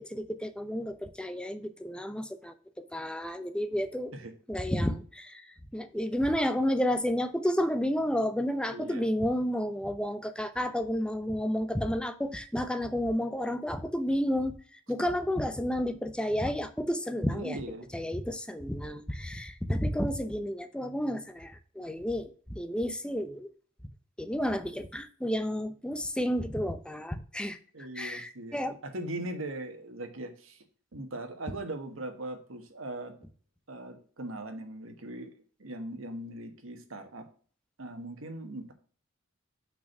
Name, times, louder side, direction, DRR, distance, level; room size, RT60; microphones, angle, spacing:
voice 1, 0.0-4.1 4.5-5.4 5.7-14.6 14.9-17.6 17.9-22.3 22.5-23.5 24.2-27.6 28.0-28.8, equal, 5° left, 0.6 m, -31 dB
voice 2, 8.7-9.1 17.3-17.9 25.9-26.0 27.7-30.6 30.9-33.1 33.7-35.3 35.6-37.3 37.8-38.7, right 1 dB, 75° right, 1.4 m, -40 dB
6.0 x 4.5 x 5.8 m
head